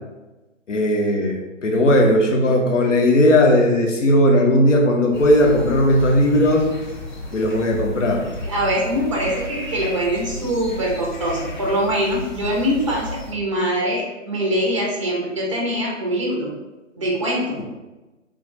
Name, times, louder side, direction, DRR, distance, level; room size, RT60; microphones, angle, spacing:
voice 1, 0.7-6.7 7.3-8.3, left 1 dB, 65° left, 1 dB, 0.7 m, -17 dB
sound 1, 5.1-13.3, left 2 dB, 40° left, 0.6 m, -33 dB
voice 2, 8.4-16.5 17.0-17.6, equal, 25° right, -2 dB, 0.4 m, -23 dB
3.4 x 2.3 x 2.5 m, 1.1 s
figure-of-eight pair, 135°, 39 cm